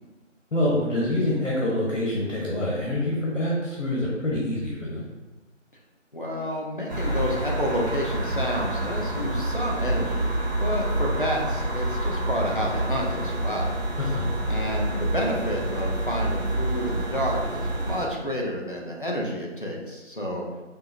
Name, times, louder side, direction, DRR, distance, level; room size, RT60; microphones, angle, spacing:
voice 1, 0.5-5.0 14.0-14.3, left 1 dB, 90° left, -6 dB, 1.2 m, -26 dB
voice 2, 6.1-10.3 10.6-13.8 14.5-20.4, equal, 45° left, -2 dB, 0.6 m, -29 dB
sound 1, 6.9-18.0, right 1 dB, 35° right, 0.9 m, -28 dB
4.6 x 2.6 x 2.6 m, 1.2 s
figure-of-eight pair, 170°, 37 cm